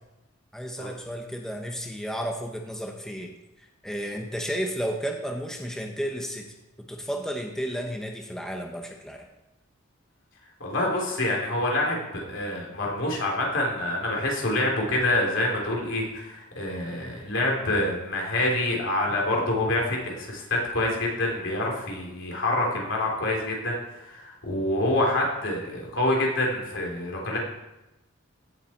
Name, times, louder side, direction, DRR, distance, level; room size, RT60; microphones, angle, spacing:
voice 1, 0.5-3.3 3.8-6.5 6.8-9.3, equal, 5° left, 2 dB, 0.9 m, -32 dB
voice 2, 10.6-27.4, left 1 dB, 65° left, -1 dB, 3.5 m, -26 dB
16.5 x 7.5 x 4.4 m, 0.96 s
head